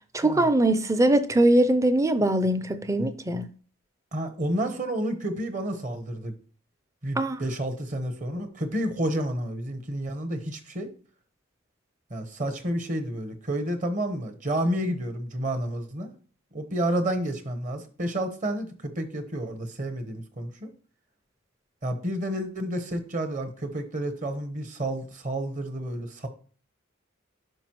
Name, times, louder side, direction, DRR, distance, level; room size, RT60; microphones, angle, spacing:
voice 1, 0.1-3.5 7.2-7.4, right 1 dB, 15° right, 0.4 m, -22 dB
voice 2, 4.1-6.3 7.0-10.9 12.1-16.1 16.5-20.7 21.8-26.3, right 1 dB, 40° right, 1.0 m, -30 dB
9.1 x 5.7 x 3.0 m
head